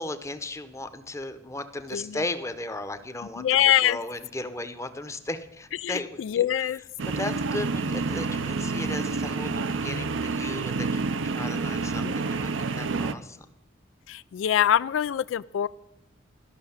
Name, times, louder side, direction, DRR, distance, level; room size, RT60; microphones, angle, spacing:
voice 1, 0.0-6.2 7.2-13.4, left 2 dB, 15° left, 9 dB, 0.8 m, -36 dB
voice 2, 1.9-2.2 3.4-4.0 5.8-6.8 12.0-12.4 14.1-15.7, left 11 dB, 90° left, 17 dB, 0.3 m, -24 dB
sound 1, 7.0-13.1, right 4 dB, 85° right, 0.6 m, -28 dB
13.0 x 6.2 x 7.1 m, 0.92 s
head